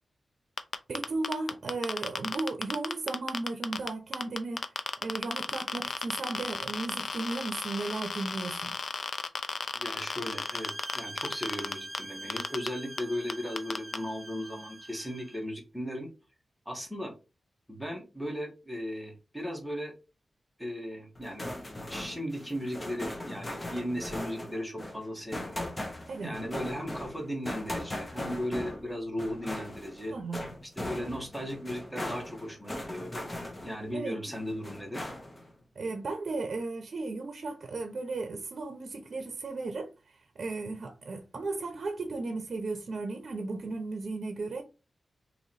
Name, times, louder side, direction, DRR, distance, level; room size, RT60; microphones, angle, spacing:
sound 1, 0.6-12.0 12.3-12.7 13.0-13.1 13.3-14.0, left 4 dB, 60° left, 0.4 m, -33 dB
voice 1, 0.9-4.6 5.0-8.7 26.1-26.4 30.1-30.4 33.9-34.2 35.8-44.6, right 3 dB, 60° right, 0.7 m, -35 dB
voice 2, 9.7-16.1 16.6-17.2 17.7-19.9 20.6-21.5 21.9-25.6 26.2-30.1 30.8-33.3 33.6-35.1, equal, 5° left, 1.2 m, -36 dB
sound 2, 10.1-15.4, right 1 dB, 10° right, 0.3 m, -44 dB
sound 3, 21.1-33.9 34.3-35.5, left 1 dB, 20° left, 0.8 m, -39 dB
3.0 x 3.0 x 4.0 m
wide cardioid pair, 130°, 0 cm